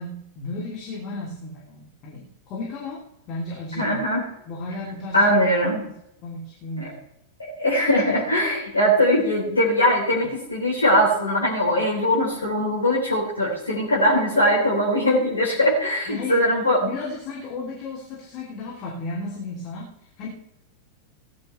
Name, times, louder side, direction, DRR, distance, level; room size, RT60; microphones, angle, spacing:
voice 1, 0.0-3.0 3.3-4.0 4.5-5.3 6.2-7.0 16.1-20.3, left 2 dB, 40° left, -3 dB, 2.9 m, -34 dB
voice 2, 3.8-4.3 5.1-5.8 6.8-6.9 7.4-16.8, equal, 75° left, -3 dB, 3.5 m, -21 dB
18.0 x 10.5 x 3.3 m, 0.81 s
figure-of-eight pair, 90°, 0 cm